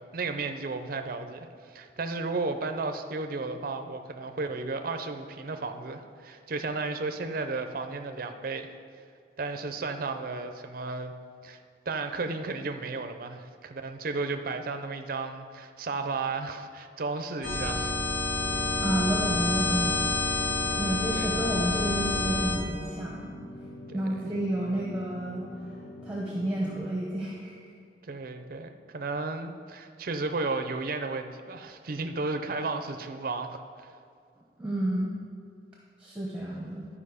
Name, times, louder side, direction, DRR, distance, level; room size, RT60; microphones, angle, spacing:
voice 1, 0.0-1.5 1.7-8.7 9.4-11.1 11.4-11.6 11.9-17.9 21.1-21.3 23.9-24.3 28.0-33.9, right 3 dB, 55° right, 7 dB, 0.6 m, -33 dB
sound 1, 17.4-22.6, left 2 dB, 60° left, 1.7 m, -28 dB
sound 2, 18.4-26.8, left 1 dB, 45° left, 1.4 m, -45 dB
voice 2, 18.8-20.1 20.8-23.3 23.9-25.5 26.0-27.6 34.6-35.1 36.0-36.9, right 1 dB, 5° right, -4 dB, 1.0 m, -30 dB
12.0 x 4.9 x 5.0 m, 2.4 s
head